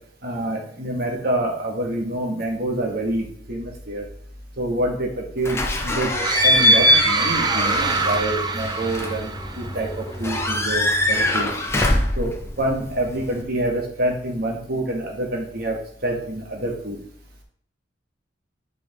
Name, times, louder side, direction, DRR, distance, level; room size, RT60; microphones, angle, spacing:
voice 1, 0.2-4.1 4.6-11.5 12.2-17.0, right 1 dB, 55° right, 1 dB, 1.7 m, -27 dB
Slam / Squeak / Alarm, 5.4-13.4, left 1 dB, 15° left, 0.8 m, -22 dB
sound 1, 6.2-9.9, right 5 dB, 20° right, 0.4 m, -24 dB
8.1 x 5.5 x 3.7 m, 0.63 s
head